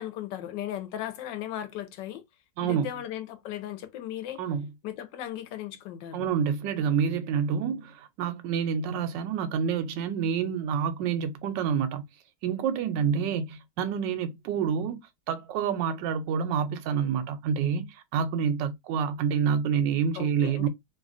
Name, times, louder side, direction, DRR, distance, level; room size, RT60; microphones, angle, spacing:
voice 1, 0.0-2.2 2.6-4.4 4.8-6.3 20.1-20.7, left 11 dB, 80° left, 1.3 m, -36 dB
voice 2, 2.6-2.9 4.4-4.7 6.1-12.0 12.4-15.0 15.3-20.7, right 7 dB, 85° right, 1.3 m, -28 dB
3.1 x 2.3 x 2.5 m
omnidirectional pair, 1.9 m